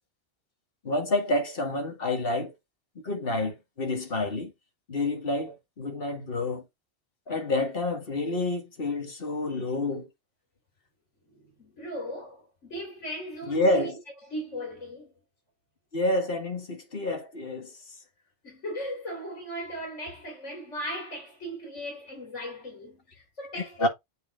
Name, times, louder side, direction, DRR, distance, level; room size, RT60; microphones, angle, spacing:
voice 1, 0.8-2.5 3.0-4.5 4.9-6.6 7.3-10.1 13.5-14.0 15.9-17.7 23.5-23.9, left 2 dB, 50° left, 1.9 m, -28 dB
voice 2, 11.3-13.9 14.3-15.1 18.4-23.9, equal, 85° left, 3.2 m, -37 dB
8.1 x 3.6 x 3.9 m
omnidirectional pair, 1.2 m